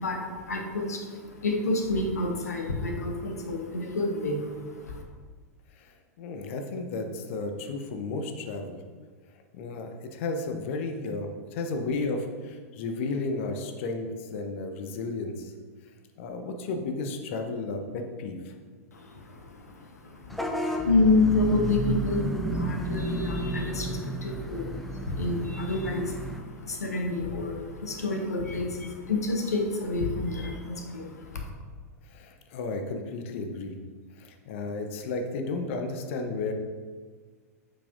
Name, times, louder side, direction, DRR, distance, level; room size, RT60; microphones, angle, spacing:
voice 1, 0.0-5.0 18.9-31.5, left 2 dB, 75° left, 3 dB, 1.1 m, -29 dB
voice 2, 5.8-8.8 9.5-15.5 16.2-18.5 20.3-20.4 32.0-33.8 34.2-36.5, left 3 dB, 50° left, 5 dB, 0.9 m, -33 dB
Vehicle horn car horn honking / Bus, 20.3-26.4, right 1 dB, ahead, 0.6 m, -32 dB
8.4 x 5.9 x 2.7 m, 1.5 s
figure-of-eight pair, 95°, 9 cm